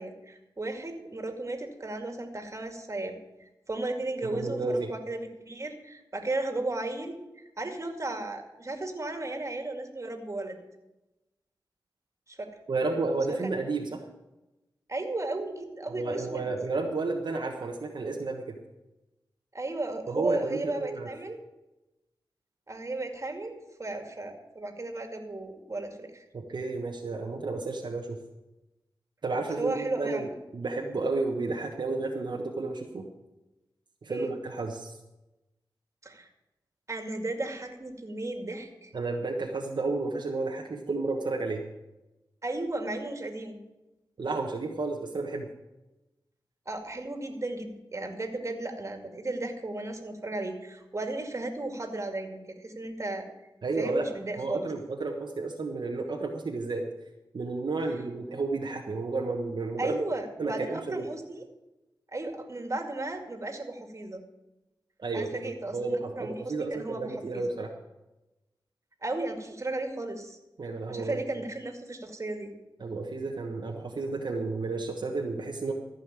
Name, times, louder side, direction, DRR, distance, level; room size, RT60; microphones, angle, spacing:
voice 1, 0.0-10.6 12.3-12.5 13.3-13.5 14.9-16.4 19.5-21.4 22.7-26.2 29.6-30.2 34.1-34.3 36.0-36.3 36.9-38.9 42.4-43.6 46.7-53.3 53.8-54.7 59.8-61.4 62.1-64.2 65.1-65.8 66.2-67.4 69.0-70.4 70.9-72.5, right 2 dB, 35° right, 4 dB, 2.3 m, -35 dB
voice 2, 4.2-4.9 12.7-14.0 15.9-18.6 20.1-21.1 26.3-28.2 29.2-33.0 34.0-35.0 38.9-41.6 44.2-45.5 53.6-54.1 54.4-56.8 57.3-60.0 60.4-61.1 65.0-65.3 65.7-67.7 70.6-71.2 72.8-75.7, right 3 dB, 65° right, 0 dB, 1.3 m, -31 dB
14.5 x 5.7 x 9.0 m, 1.0 s
cardioid pair, 65°, 8 cm